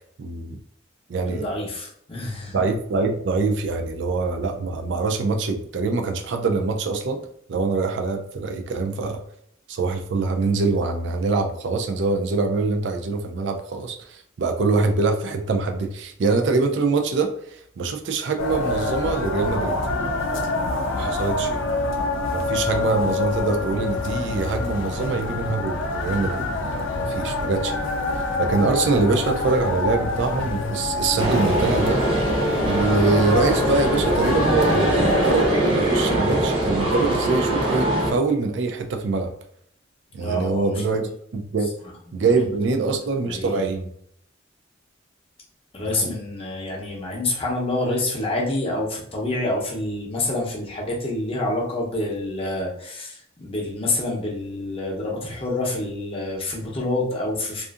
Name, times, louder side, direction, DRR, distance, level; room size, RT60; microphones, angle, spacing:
voice 1, 0.2-0.6 1.1-1.5 2.5-7.2 7.5-9.2 9.7-19.8 20.9-21.6 22.3-27.9 28.4-32.0 32.6-39.3 40.1-41.0 41.3-41.7 42.1-43.9 45.9-46.1, right 3 dB, 65° right, 5 dB, 0.4 m, -24 dB
voice 2, 1.3-2.5 40.2-40.8 42.1-42.4 42.8-43.6 45.7-57.6, left 2 dB, 30° left, -3 dB, 0.7 m, -27 dB
sound 1, 18.4-35.5, left 3 dB, 80° left, 0.4 m, -26 dB
sound 2, 31.2-38.1, right 1 dB, 30° right, 0.6 m, -22 dB
2.6 x 2.4 x 2.4 m, 0.68 s
head